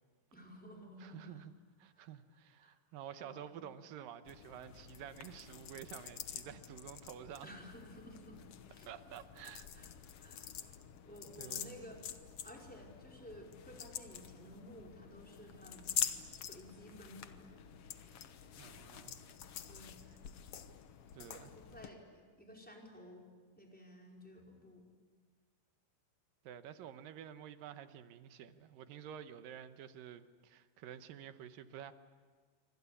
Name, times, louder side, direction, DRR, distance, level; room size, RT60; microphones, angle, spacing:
voice 1, 0.3-1.4 1.9-2.1 2.6-2.7 3.2-3.5 7.4-8.4 8.7-8.9 9.7-9.9 10.2-10.7 11.0-12.1 12.4-16.0 16.3-17.6 19.6-20.0 21.2-23.3 23.6-24.9, equal, ahead, -1 dB, 4.6 m, -54 dB
voice 2, 1.0-1.5 1.8-7.5 8.9-9.9 10.2-10.5 11.4-11.8 18.6-19.2 21.1-21.5 26.4-31.9, right 9 dB, 75° right, 10 dB, 2.6 m, -50 dB
sound 1, 4.3-21.9, left 9 dB, 75° left, 1.3 m, -46 dB
27.5 x 25.0 x 8.5 m, 1.5 s
omnidirectional pair, 4.3 m